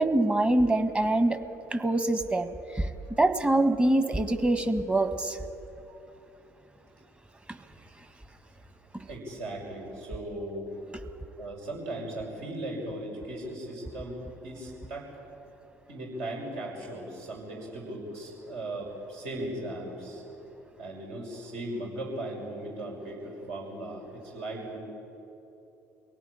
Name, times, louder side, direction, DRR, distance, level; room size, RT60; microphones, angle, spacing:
voice 1, 0.0-1.4 1.7-2.9 3.2-5.4 7.5-7.6 8.9-9.0, right 1 dB, 15° right, 10 dB, 1.5 m, -25 dB
voice 2, 9.1-10.7 11.4-15.1 15.9-20.2 20.8-24.8, right 1 dB, 65° right, -1 dB, 6.2 m, -38 dB
24.0 x 17.5 x 8.7 m, 2.9 s
figure-of-eight pair, 55°, 8 cm